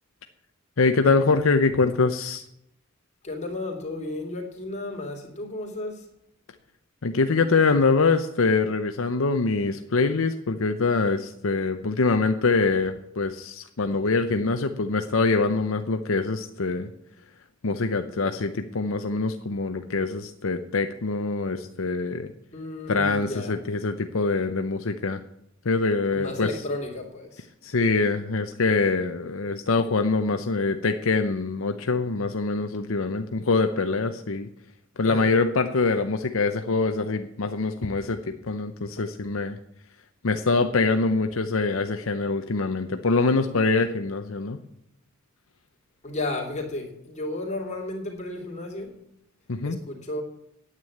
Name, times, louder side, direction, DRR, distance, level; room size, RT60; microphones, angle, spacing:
voice 1, 0.8-2.4 7.0-16.9 17.6-22.3 22.9-25.2 25.6-26.5 27.6-34.5 35.0-39.6 40.2-44.6 49.5-49.8, left 3 dB, 80° left, 0.8 m, -24 dB
voice 2, 3.2-6.1 22.5-23.6 26.1-27.5 35.0-35.3 46.0-49.0 49.6-50.2, left 2 dB, 35° left, 2.8 m, -33 dB
9.5 x 9.2 x 8.5 m
head